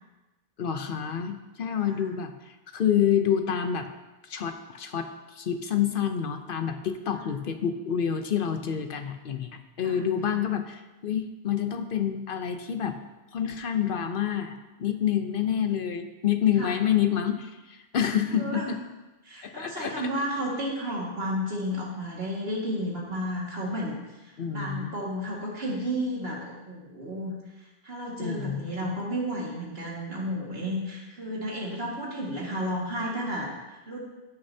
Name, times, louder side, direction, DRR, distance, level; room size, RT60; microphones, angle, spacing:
voice 1, 0.6-3.9 4.2-13.0 13.3-18.8 19.4-19.9 24.4-25.0 28.2-28.9, left 9 dB, 60° left, 7 dB, 0.8 m, -28 dB
voice 2, 9.8-10.4 16.6-16.8 18.3-18.8 19.2-24.0 24.2-27.4 27.8-34.0, equal, 75° right, -3 dB, 2.2 m, -32 dB
14.0 x 6.5 x 2.8 m, 1.1 s
omnidirectional pair, 1.1 m